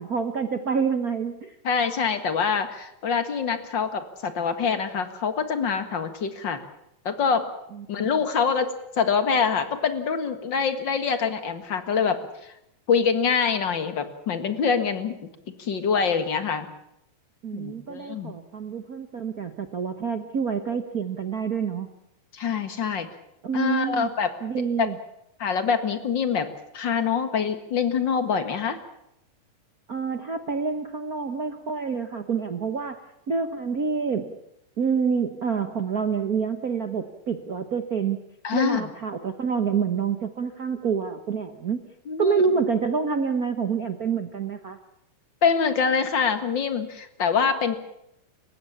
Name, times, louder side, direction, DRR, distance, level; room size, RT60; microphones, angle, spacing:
voice 1, 0.0-1.5 7.7-8.2 17.4-21.9 23.4-24.1 24.4-25.0 29.9-34.3 34.8-38.2 38.5-41.8 42.2-44.8, right 6 dB, 90° right, 8 dB, 0.8 m, -27 dB
voice 2, 1.6-6.6 7.1-7.5 7.9-12.5 12.9-15.2 15.6-16.7 17.5-18.3 22.3-23.1 23.5-24.3 24.8-24.9 25.4-26.5 26.7-28.8 38.4-38.9 42.1-42.5 45.4-47.7, left 6 dB, 40° left, 9 dB, 2.0 m, -25 dB
30.0 x 16.5 x 7.3 m, 0.81 s
omnidirectional pair, 3.7 m